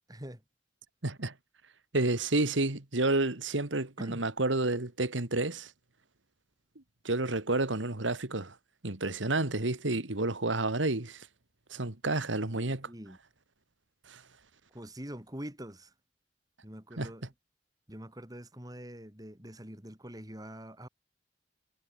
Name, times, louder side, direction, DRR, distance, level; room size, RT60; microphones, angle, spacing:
voice 1, 0.1-0.4 4.0-4.2 12.5-13.2 14.7-15.9 16.6-17.2 17.9-20.9, equal, 20° right, 4.6 m, -44 dB
voice 2, 1.0-1.3 1.9-5.7 7.0-8.6 8.8-11.3 11.7-12.9 14.1-14.2 17.0-17.1, right 2 dB, 85° right, 2.2 m, -30 dB
head